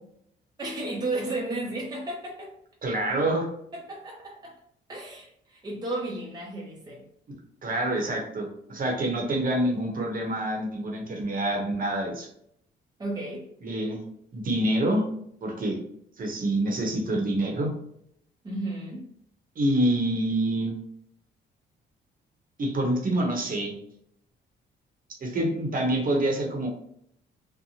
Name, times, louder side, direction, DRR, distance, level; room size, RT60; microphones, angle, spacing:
voice 1, 0.6-2.6 3.7-4.6 4.9-7.0 13.0-13.5 18.4-19.1, right 2 dB, 20° right, -2 dB, 0.6 m, -33 dB
voice 2, 2.8-3.5 7.6-12.3 13.6-14.0 14.3-15.0 15.4-15.8 16.2-17.7 19.6-20.7 22.6-23.8 25.2-26.7, right 1 dB, 45° right, 1 dB, 0.9 m, -26 dB
2.7 x 2.1 x 2.7 m, 0.70 s
cardioid pair, 90°, 20 cm